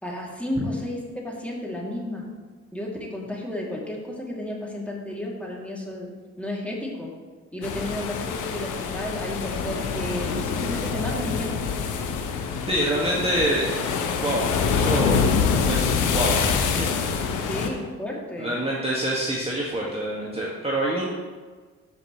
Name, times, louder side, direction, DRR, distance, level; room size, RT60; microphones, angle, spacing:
voice 1, 0.0-2.2 2.7-6.1 6.4-7.1 7.5-11.5 17.5-18.5, left 1 dB, 5° left, -3 dB, 2.7 m, -32 dB
sound 1, 7.6-17.7, left 6 dB, 70° left, 1.0 m, -25 dB
voice 2, 12.7-13.7 14.2-15.2 15.7-16.9 17.3-17.5 18.4-21.0, right 1 dB, 20° right, -5 dB, 1.8 m, -26 dB
13.0 x 5.5 x 3.2 m, 1.4 s
hypercardioid pair, 50°, 32 cm